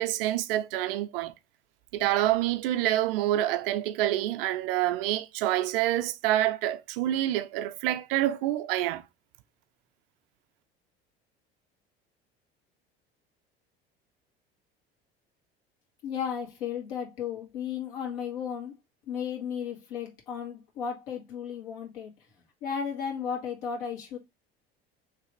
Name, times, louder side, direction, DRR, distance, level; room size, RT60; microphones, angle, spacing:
voice 1, 0.0-1.3 1.9-9.0, right 14 dB, 65° right, 0.5 m, -27 dB
voice 2, 16.0-18.7 19.1-22.1 22.6-24.2, left 7 dB, 70° left, 1.9 m, -34 dB
3.3 x 3.1 x 4.3 m
figure-of-eight pair, 65°, 30 cm